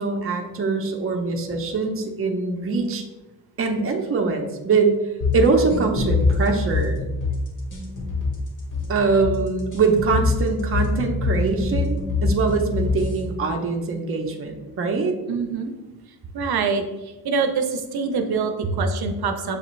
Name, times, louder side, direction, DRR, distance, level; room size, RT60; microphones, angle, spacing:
voice 1, 0.0-3.0 3.6-5.0 5.3-7.0 8.9-15.2, right 4 dB, 40° right, 3 dB, 0.6 m, -23 dB
sound 1, 5.2-13.2, left 3 dB, 55° left, 1.3 m, -24 dB
voice 2, 15.3-15.7 16.3-16.8 17.2-19.6, right 5 dB, 85° right, 6 dB, 0.6 m, -25 dB
7.0 x 2.5 x 3.0 m, 1.1 s
wide cardioid pair, 165°, 37 cm